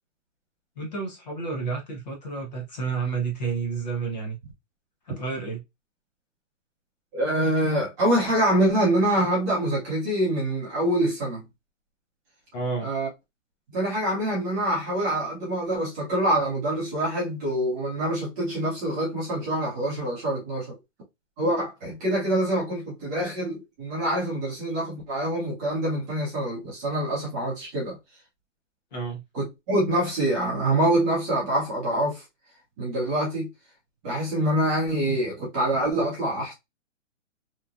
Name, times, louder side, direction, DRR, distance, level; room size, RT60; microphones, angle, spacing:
voice 1, 0.8-4.4 5.0-5.6 12.5-12.9 28.9-29.2, right 5 dB, 35° left, 0.8 m, -30 dB
voice 2, 7.1-11.4 12.8-13.1 13.7-20.8 21.4-28.0 29.3-32.2 32.8-33.5 34.0-36.5, right 1 dB, 15° right, 0.9 m, -25 dB
3.0 x 2.3 x 2.4 m
hypercardioid pair, 170°, 37 cm